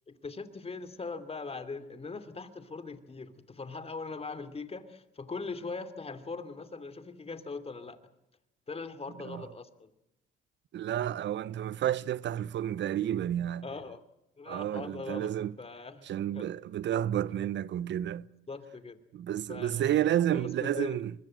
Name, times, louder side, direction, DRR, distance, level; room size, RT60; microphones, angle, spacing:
voice 1, 0.1-8.0 8.7-9.9 13.6-14.0 14.4-16.1 16.3-16.4 18.5-19.0 19.5-21.0, left 4 dB, 30° left, 2.7 m, -41 dB
voice 2, 10.7-13.7 14.5-15.5 16.1-18.3 19.1-21.1, right 11 dB, 65° right, 0.8 m, -31 dB
24.0 x 21.5 x 7.6 m
cardioid pair, 90°, 20 cm